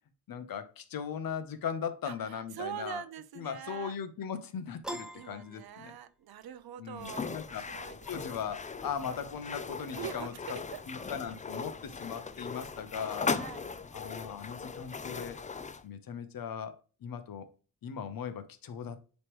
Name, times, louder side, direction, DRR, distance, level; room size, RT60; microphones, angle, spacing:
voice 1, 0.3-3.0 3.3-6.0 6.8-7.6 8.0-10.6 10.9-13.4 13.9-15.4 15.8-17.5 17.8-19.0, left 7 dB, 70° left, 0.9 m, -39 dB
voice 2, 2.0-3.9 5.1-8.0 9.9-10.8 13.3-13.7, right 10 dB, 85° right, 0.8 m, -43 dB
Piano, 4.8-6.4, right 1 dB, ahead, 0.9 m, -43 dB
sound 1, 7.0-15.8, left 5 dB, 20° left, 0.4 m, -39 dB
9.4 x 3.2 x 3.1 m
cardioid pair, 90°, 36 cm